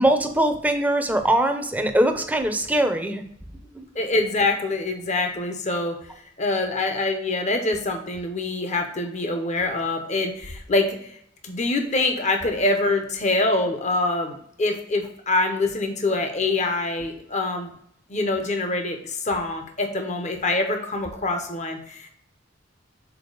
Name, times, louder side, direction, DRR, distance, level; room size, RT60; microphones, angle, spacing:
voice 1, 0.0-3.2 3.7-3.8, right 1 dB, 10° right, 5 dB, 0.7 m, -22 dB
voice 2, 3.9-6.0 6.4-11.1 11.4-17.7 18.1-22.1, left 2 dB, 40° left, 4 dB, 0.9 m, -25 dB
7.0 x 4.2 x 3.9 m, 0.69 s
head